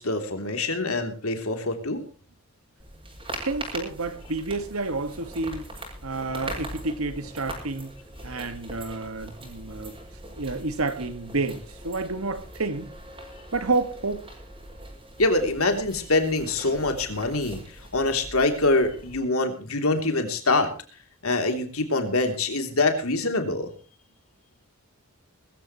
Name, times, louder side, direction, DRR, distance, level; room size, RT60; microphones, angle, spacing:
voice 1, 0.0-2.0 15.2-17.6 17.9-20.7 21.2-23.7, left 2 dB, 70° left, 3.2 m, -24 dB
sound 1, 2.8-19.2, right 1 dB, 25° right, 6.8 m, -41 dB
voice 2, 3.4-5.7 6.0-7.9 8.2-10.0 10.4-12.9 13.5-14.3, right 3 dB, 75° right, 1.9 m, -29 dB
21.5 x 14.5 x 3.1 m
head